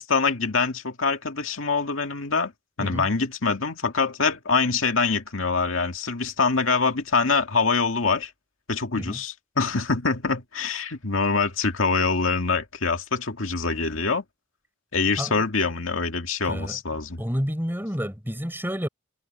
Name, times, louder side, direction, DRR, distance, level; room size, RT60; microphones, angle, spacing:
voice 1, 0.0-2.5 2.8-8.3 8.7-14.2 14.9-17.2, left 4 dB, 70° left, 2.1 m, -24 dB
voice 2, 16.4-16.8 17.2-18.9, equal, 10° right, 4.8 m, -29 dB
head